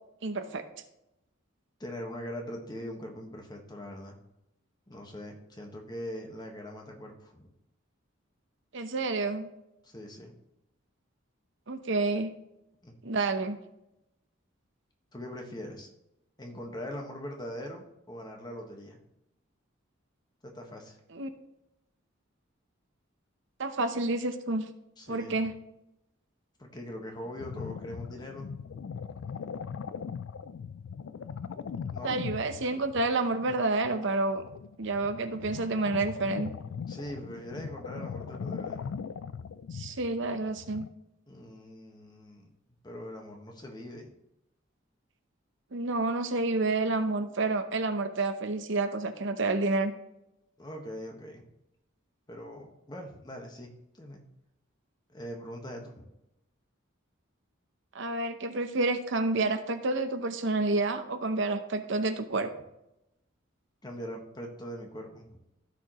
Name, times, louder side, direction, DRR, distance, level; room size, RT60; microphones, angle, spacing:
voice 1, 0.2-0.6 8.7-9.5 11.7-12.3 13.0-13.6 21.1-21.3 23.6-24.7 25.1-25.5 32.0-34.4 34.8-36.5 39.7-40.8 45.7-49.9 57.9-62.5, right 2 dB, 60° right, 8 dB, 0.8 m, -29 dB
voice 2, 1.8-4.2 4.9-7.5 9.8-10.3 12.8-12.9 15.1-15.9 16.4-19.0 20.4-21.0 25.0-25.4 26.6-28.5 31.9-32.2 36.9-39.0 41.3-42.5 42.8-44.1 50.6-51.5 52.3-54.2 55.1-56.1 63.8-65.4, equal, 20° left, 2 dB, 1.4 m, -42 dB
sound 1, 27.4-40.9, left 6 dB, 70° left, 0.4 m, -40 dB
15.5 x 5.1 x 3.0 m, 0.87 s
head